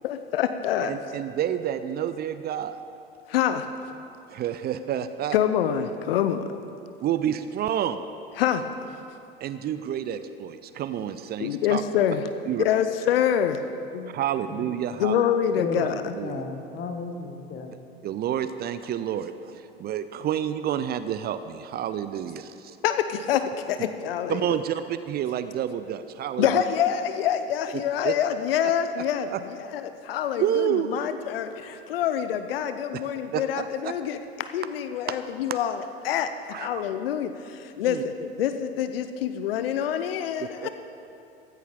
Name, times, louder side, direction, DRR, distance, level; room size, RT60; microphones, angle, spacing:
voice 1, 0.0-1.0 3.3-3.7 5.3-6.5 8.4-8.7 11.4-12.3 12.6-13.6 13.9-14.1 15.0-15.9 22.8-24.6 26.4-40.7, left 9 dB, 65° left, 10 dB, 0.8 m, -26 dB
voice 2, 0.8-2.8 4.3-5.4 7.0-8.0 9.4-11.8 12.5-12.6 14.1-15.2 16.2-16.4 18.0-22.8 24.3-26.6 27.7-28.1 29.3-29.4 30.4-31.1 33.3-33.9 35.1-35.2 36.5-36.8 37.8-38.0 40.4-40.7, right 10 dB, 30° right, 12 dB, 0.5 m, -29 dB
voice 3, 15.5-17.7, left 3 dB, 35° left, 5 dB, 1.6 m, -34 dB
15.5 x 15.0 x 3.8 m, 2.7 s
figure-of-eight pair, 75°, 31 cm